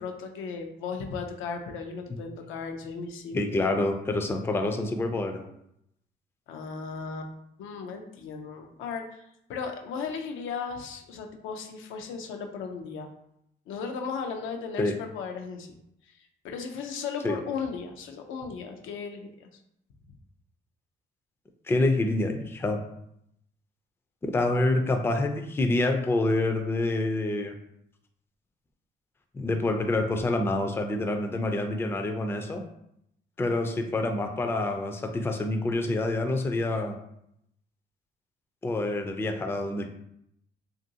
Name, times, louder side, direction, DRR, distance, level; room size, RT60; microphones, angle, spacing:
voice 1, 0.0-3.7 6.5-7.3 7.6-9.2 9.5-13.1 13.7-15.8 16.4-19.5 33.5-33.6, left 5 dB, 85° left, 4 dB, 0.5 m, -36 dB
voice 2, 3.3-5.4 14.8-14.9 17.2-17.4 21.7-22.8 24.2-27.5 29.3-32.6 33.4-37.0 38.6-39.9, left 2 dB, 10° left, 4 dB, 0.3 m, -27 dB
2.9 x 2.5 x 2.7 m, 0.77 s
cardioid pair, 90°, 20 cm